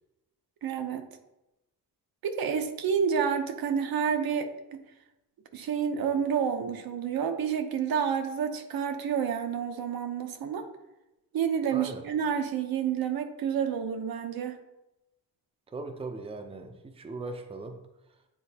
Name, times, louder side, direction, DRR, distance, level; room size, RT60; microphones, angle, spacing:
voice 1, 0.6-1.1 2.2-4.8 5.5-10.6 11.3-14.6, right 7 dB, 65° right, 6 dB, 0.8 m, -29 dB
voice 2, 11.7-12.0 15.7-17.8, right 3 dB, 15° right, 5 dB, 0.5 m, -38 dB
9.3 x 3.8 x 2.8 m, 0.94 s
cardioid pair, 105°, 39 cm